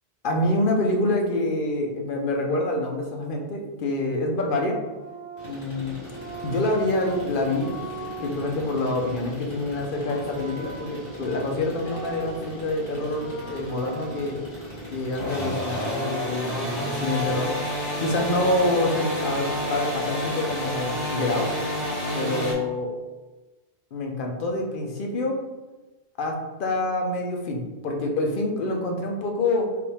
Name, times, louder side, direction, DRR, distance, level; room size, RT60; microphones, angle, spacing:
voice 1, 0.2-4.8 5.4-5.9 6.4-7.7 8.2-14.4 14.9-17.5 18.0-21.5 22.1-22.9 23.9-25.4 26.2-29.7, left 2 dB, 55° left, 1 dB, 0.8 m, -26 dB
sound 1, 4.4-8.7 9.8-12.7 13.0-14.6 15.2-17.1 18.2-19.6, right 3 dB, 25° right, 0.5 m, -40 dB
sound 2, 5.4-22.5, equal, 85° left, 1.6 m, -32 dB
4.8 x 2.6 x 3.4 m, 1.2 s
omnidirectional pair, 1.1 m